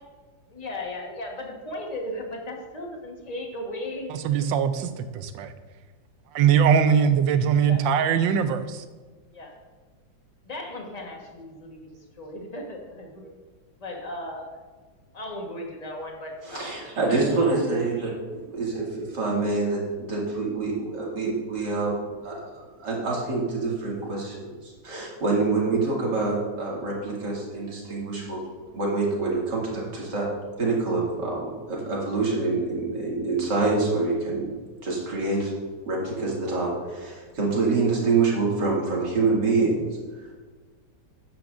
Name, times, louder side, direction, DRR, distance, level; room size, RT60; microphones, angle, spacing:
voice 1, 0.5-4.1 7.6-7.9 9.3-9.6 10.4-13.3 13.8-14.6 15.1-16.6, left 1 dB, 25° left, 1 dB, 1.3 m, -36 dB
voice 2, 4.1-5.5 6.3-8.8, right 7 dB, 80° right, 10 dB, 1.4 m, -21 dB
voice 3, 16.4-18.1 18.6-21.9 22.2-28.4 28.7-30.3 30.6-34.5 34.8-35.5 35.8-39.8, right 3 dB, 65° right, -4 dB, 2.9 m, -26 dB
12.5 x 8.9 x 2.6 m, 1.4 s
omnidirectional pair, 2.0 m